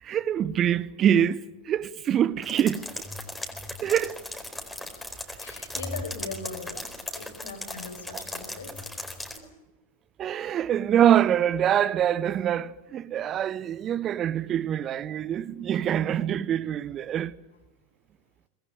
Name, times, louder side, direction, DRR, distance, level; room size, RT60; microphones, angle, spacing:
voice 1, 0.0-2.9 3.8-4.2 8.1-8.2 10.2-17.3, right 10 dB, 30° right, 0.8 m, -25 dB
sound 1, 2.4-9.4, left 1 dB, 5° left, 4.4 m, -38 dB
voice 2, 5.4-6.9 7.2-8.9 9.3-9.5, left 4 dB, 70° left, 6.3 m, -40 dB
24.5 x 20.0 x 9.3 m
figure-of-eight pair, 90°, 0 cm